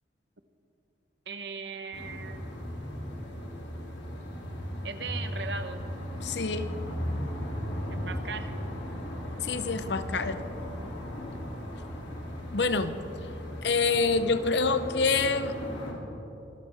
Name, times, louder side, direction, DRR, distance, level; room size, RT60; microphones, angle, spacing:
voice 1, 1.3-2.5 4.8-5.8 7.9-8.6, right 5 dB, 70° right, 8 dB, 1.0 m, -38 dB
sound 1, 1.9-15.9, equal, 85° left, 2.9 m, -37 dB
voice 2, 6.2-6.7 9.4-10.4 12.5-13.0 13.6-15.5, left 4 dB, 70° left, 11 dB, 0.8 m, -26 dB
24.5 x 13.5 x 3.5 m, 3.0 s
head